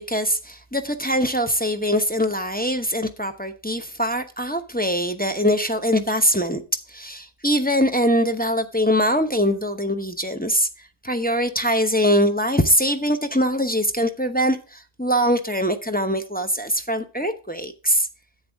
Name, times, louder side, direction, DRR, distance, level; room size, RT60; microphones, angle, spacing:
voice 1, 0.0-6.6 6.9-10.7 11.0-18.1, equal, 10° left, 0.7 m, -22 dB
10.0 x 8.2 x 3.5 m
omnidirectional pair, 1.3 m